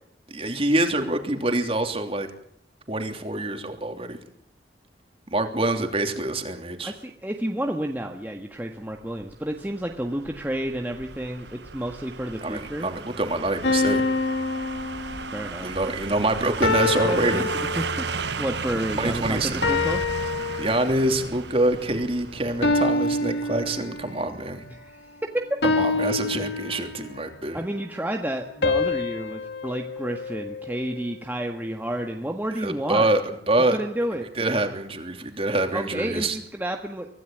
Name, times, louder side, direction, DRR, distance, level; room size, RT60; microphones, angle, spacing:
voice 1, 0.3-2.3 2.9-4.2 5.3-6.9 12.4-14.0 15.6-17.5 19.0-19.6 20.6-24.6 25.8-27.6 32.5-33.8 34.4-36.4, right 2 dB, 35° right, 6 dB, 3.1 m, -25 dB
voice 2, 6.8-12.9 15.3-15.7 16.9-17.5 17.8-20.0 24.7-25.0 25.3-25.4 27.5-33.1 33.7-34.3 35.7-37.1, right 1 dB, 10° right, 2 dB, 1.6 m, -30 dB
sound 1, 9.2-24.1 24.4-24.5, right 4 dB, 85° right, 1.2 m, -35 dB
sound 2, 13.6-15.6 16.6-18.3 19.6-21.2 22.6-24.3 25.6-27.2 28.6-31.0, left 3 dB, 85° left, 2.6 m, -26 dB
25.0 x 17.0 x 9.2 m, 0.68 s
head